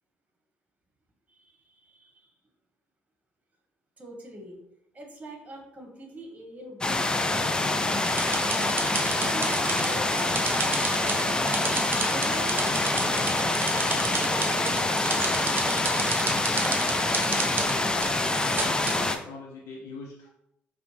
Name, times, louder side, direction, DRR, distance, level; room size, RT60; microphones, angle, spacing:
voice 1, 1.3-2.3 4.0-4.6 4.9-8.1 8.5-8.7 9.3-11.6 12.1-15.5, right 1 dB, 25° right, 2 dB, 1.1 m, -43 dB
sound 1, 6.8-19.2, left 2 dB, 15° left, 0.4 m, -26 dB
sound 2, 8.1-19.0, right 4 dB, 40° right, 0.6 m, -32 dB
voice 2, 18.3-20.3, left 3 dB, 60° left, -2 dB, 0.6 m, -42 dB
4.9 x 2.0 x 3.2 m, 0.82 s
hypercardioid pair, 50°, 5 cm